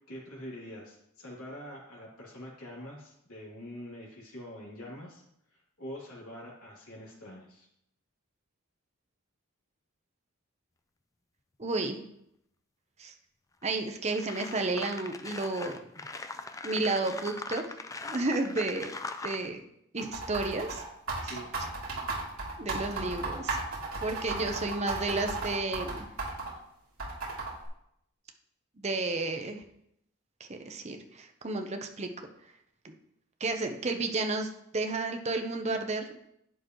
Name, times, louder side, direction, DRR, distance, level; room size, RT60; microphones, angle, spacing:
voice 1, 0.1-5.2 5.5-7.7 21.3-21.5, equal, 80° left, -4 dB, 3.1 m, -45 dB
voice 2, 11.6-12.1 13.0-13.1 13.6-15.8 16.6-17.6 18.0-18.9 19.2-19.6 19.9-20.8 21.2-21.3 22.6-23.6 24.0-26.1 28.8-29.6 30.4-32.1 32.8-32.9 33.4-36.3, right 2 dB, 30° right, 5 dB, 0.8 m, -32 dB
sound 1, 13.6-13.7 14.1-19.5, left 3 dB, 15° left, 0.4 m, -40 dB
sound 2, 20.0-26.5 27.0-27.7, right 3 dB, 70° right, 3.3 m, -34 dB
11.0 x 8.7 x 3.1 m, 0.76 s
head